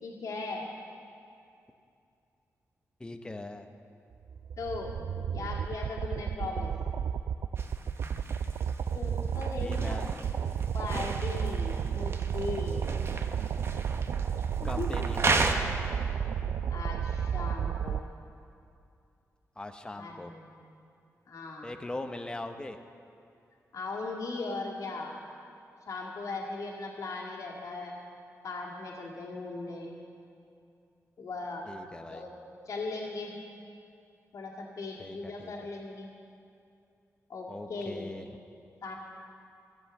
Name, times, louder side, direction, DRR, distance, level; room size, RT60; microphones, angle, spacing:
voice 1, 0.0-0.7 4.6-4.9 5.3-6.7 8.9-10.0 10.7-12.8 14.6-15.1 16.7-18.1 19.9-20.5 21.3-21.7 23.7-25.2 25.9-28.0 28.4-29.9 31.2-31.6 32.1-32.4 32.7-33.4 34.3-36.1 37.3-38.2 38.8-39.0, left 3 dB, 75° left, -1 dB, 1.9 m, -38 dB
voice 2, 3.0-3.7 9.6-10.1 14.6-15.8 19.6-20.3 21.6-22.8 31.7-32.2 35.0-35.5 37.5-38.3, left 2 dB, 15° left, 7 dB, 0.8 m, -40 dB
sound 1, 4.2-18.0, right 7 dB, 75° right, 0.4 m, -32 dB
sound 2, 7.6-15.5, right 3 dB, 45° right, 0.9 m, -35 dB
15.0 x 7.9 x 7.0 m, 2.5 s
wide cardioid pair, 100°, 6 cm